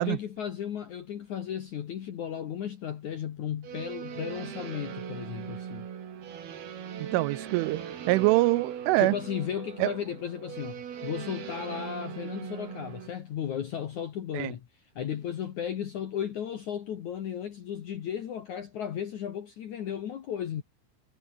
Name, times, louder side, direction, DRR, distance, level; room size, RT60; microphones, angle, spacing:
voice 1, 0.0-5.9 9.0-20.6, left 9 dB, 80° left, 1.7 m, -35 dB
sound 1, 3.6-13.1, right 8 dB, 55° right, 4.4 m, -40 dB
voice 2, 7.0-7.8 8.1-9.2 9.8-9.9 14.3-14.5, right 19 dB, 80° right, 3.0 m, -24 dB
omnidirectional pair, 5.9 m